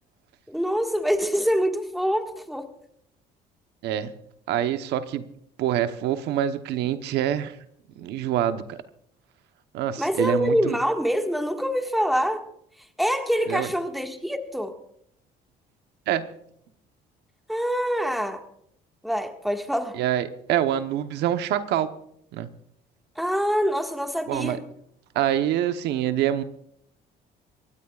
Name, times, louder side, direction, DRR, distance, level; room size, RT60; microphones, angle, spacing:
voice 1, 0.5-2.7 10.0-12.5 13.0-14.8 17.5-18.4 19.0-20.0 23.2-24.6, equal, ahead, 5 dB, 1.8 m, -25 dB
voice 2, 4.5-5.2 5.6-7.6 8.0-8.8 9.7-10.8 13.5-13.7 16.1-16.3 19.9-21.9 22.3-22.5 24.3-24.6 25.1-26.4, right 11 dB, 80° right, 10 dB, 1.0 m, -25 dB
23.5 x 17.0 x 2.4 m, 0.70 s
cardioid pair, 110°, 17 cm